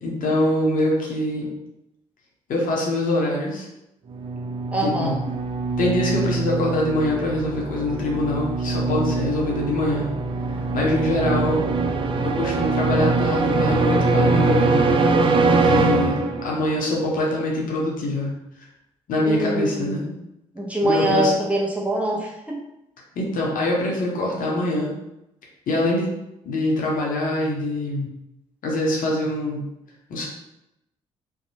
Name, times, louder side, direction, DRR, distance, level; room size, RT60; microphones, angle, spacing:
voice 1, 0.0-1.5 2.5-3.7 4.8-5.2 5.8-10.1 10.7-11.6 12.2-14.8 15.4-18.3 19.1-20.0 20.8-21.3 23.2-24.9 25.7-26.1 26.4-28.1 28.6-29.7 30.1-30.3, left 1 dB, 60° left, -3 dB, 0.7 m, -24 dB
sound 1, 4.1-16.7, right 3 dB, 35° right, 0.4 m, -22 dB
voice 2, 4.7-5.2 19.2-20.2 20.5-22.6, right 1 dB, 10° right, -4 dB, 0.9 m, -24 dB
2.7 x 2.2 x 2.7 m, 0.87 s
hypercardioid pair, 45°, 16 cm